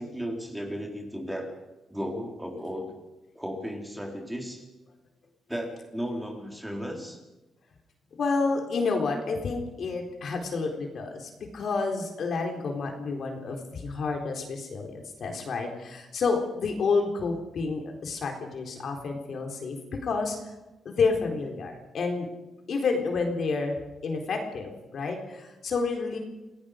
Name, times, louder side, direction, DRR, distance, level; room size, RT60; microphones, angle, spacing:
voice 1, 0.0-1.5 1.9-2.9 3.3-4.6 5.5-7.2, equal, 5° right, 1 dB, 4.2 m, -35 dB
voice 2, 8.1-19.8 20.0-20.4 20.8-22.3 22.7-26.2, left 4 dB, 55° left, 2 dB, 3.9 m, -29 dB
28.5 x 18.0 x 5.2 m, 1.0 s
cardioid pair, 120°, 0 cm